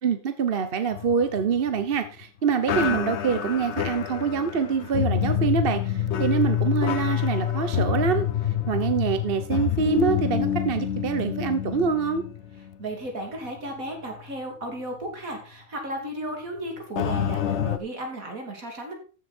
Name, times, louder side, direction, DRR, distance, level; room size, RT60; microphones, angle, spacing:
voice 1, 0.0-8.3 8.7-12.2, right 6 dB, 45° right, 9 dB, 1.0 m, -25 dB
sound 1, 0.9-2.2 2.7-13.1 13.4-13.6 14.2-14.3 17.0-17.8, left 9 dB, 55° left, 0.9 m, -27 dB
voice 2, 12.8-18.9, right 1 dB, 60° right, 2 dB, 3.5 m, -34 dB
14.0 x 7.4 x 4.4 m, 0.37 s
omnidirectional pair, 1.6 m